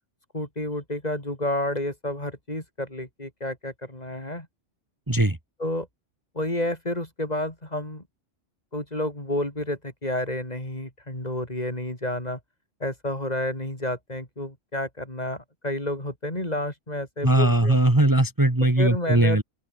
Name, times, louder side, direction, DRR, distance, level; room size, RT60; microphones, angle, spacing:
voice 1, 0.3-4.5 5.6-5.9 6.3-8.0 8.7-12.4 12.8-17.8 18.6-19.4, left 1 dB, 30° left, 4.9 m, -30 dB
voice 2, 17.2-19.4, right 1 dB, 15° right, 1.9 m, -20 dB
open air
omnidirectional pair, 1.3 m